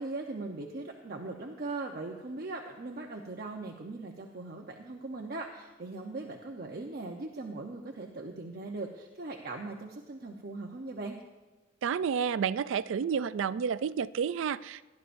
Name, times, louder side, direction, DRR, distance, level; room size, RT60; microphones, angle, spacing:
voice 1, 0.0-11.2, right 2 dB, 55° right, 1 dB, 0.8 m, -39 dB
voice 2, 11.8-14.8, right 7 dB, 80° right, 17 dB, 0.4 m, -30 dB
18.5 x 11.5 x 2.6 m, 1.2 s
head